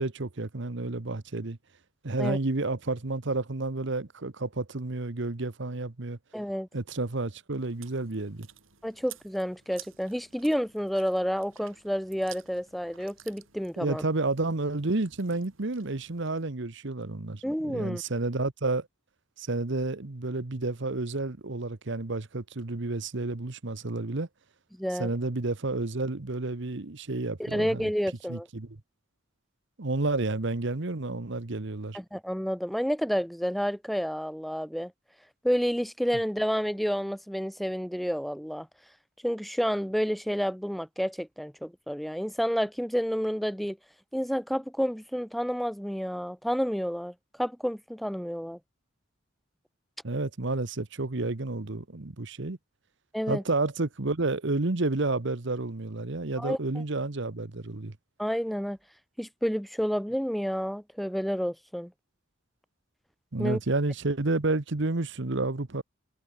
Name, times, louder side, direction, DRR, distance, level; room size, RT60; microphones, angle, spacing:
voice 1, 0.0-1.6 2.0-6.2 6.7-8.5 13.8-18.9 19.4-24.3 25.0-27.9 28.3-28.8 29.8-32.0 50.0-52.6 53.3-58.0 63.3-65.8, right 2 dB, 65° right, 1.2 m, -30 dB
voice 2, 6.3-6.7 8.8-14.0 17.4-18.0 24.8-25.1 27.4-28.5 31.9-34.9 35.4-38.7 39.2-43.8 44.1-48.6 53.1-53.4 56.4-56.8 58.2-58.8 59.2-61.9 63.4-63.6, equal, ahead, 0.7 m, -30 dB
Chewing mastication, 7.6-16.4, right 11 dB, 80° right, 6.0 m, -53 dB
head